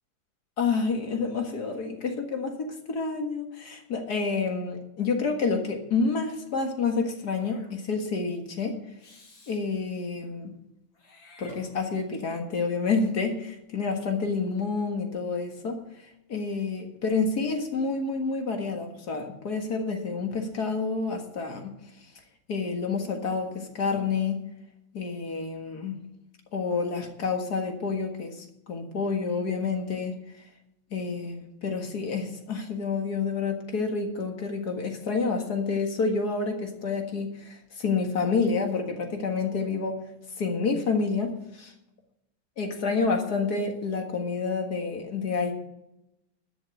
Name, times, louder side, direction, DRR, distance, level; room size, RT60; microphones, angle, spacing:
voice 1, 0.6-8.8 9.5-10.5 11.4-15.8 16.3-21.7 22.5-24.4 24.9-26.0 26.5-30.1 30.9-40.0 40.4-41.7 42.6-45.5, left 4 dB, 55° left, 4 dB, 2.2 m, -29 dB
Meow / Hiss, 7.1-7.7 9.0-9.6 10.9-12.2, left 1 dB, 85° left, 4.4 m, -52 dB
12.5 x 7.4 x 8.0 m, 0.87 s
omnidirectional pair, 2.1 m